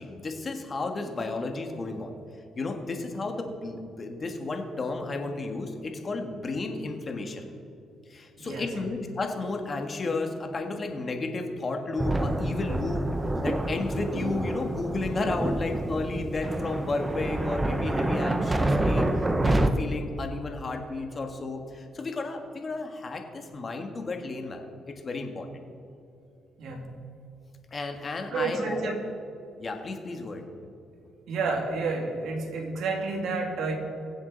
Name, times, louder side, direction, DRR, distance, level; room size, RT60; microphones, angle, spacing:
voice 1, 0.0-2.1 2.6-7.5 8.1-13.0 13.4-25.5 27.7-28.9 29.6-30.4, left 3 dB, 35° left, 4 dB, 1.8 m, -33 dB
voice 2, 8.4-8.7 26.6-26.9 28.3-29.0 31.3-33.7, right 3 dB, 75° right, 1 dB, 2.5 m, -30 dB
sound 1, 12.0-19.7, right 1 dB, 20° right, 0.9 m, -27 dB
23.0 x 7.7 x 4.1 m, 2.7 s
cardioid pair, 90°, 0 cm